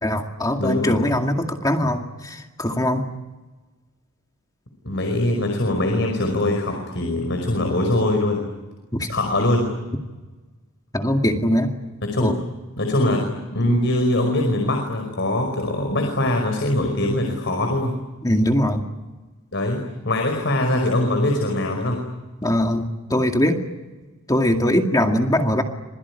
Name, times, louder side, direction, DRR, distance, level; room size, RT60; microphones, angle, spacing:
voice 1, 0.0-3.1 8.9-9.1 10.9-11.7 12.2-12.3 18.2-18.8 22.4-23.6 24.3-25.6, left 1 dB, 15° left, 3 dB, 2.2 m, -21 dB
voice 2, 0.6-1.0 4.8-8.5 9.1-9.7 12.1-12.3 12.8-13.3 13.5-17.9 19.5-19.8 20.1-22.0, left 1 dB, 60° left, 4 dB, 5.4 m, -22 dB
27.0 x 22.0 x 9.8 m, 1.2 s
head